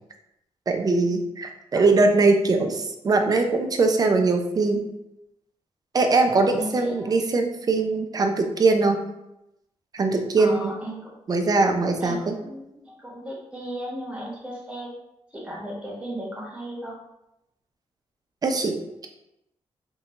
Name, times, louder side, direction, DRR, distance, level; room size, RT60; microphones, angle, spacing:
voice 1, 0.7-4.8 5.9-9.0 9.9-10.7 11.3-12.4 18.4-19.1, right 3 dB, 35° right, 5 dB, 0.4 m, -21 dB
voice 2, 6.3-7.2 10.4-11.1 12.0-14.9 15.3-17.0, equal, 10° right, -5 dB, 0.9 m, -35 dB
2.6 x 2.1 x 2.8 m, 0.87 s
cardioid pair, 100°, 11 cm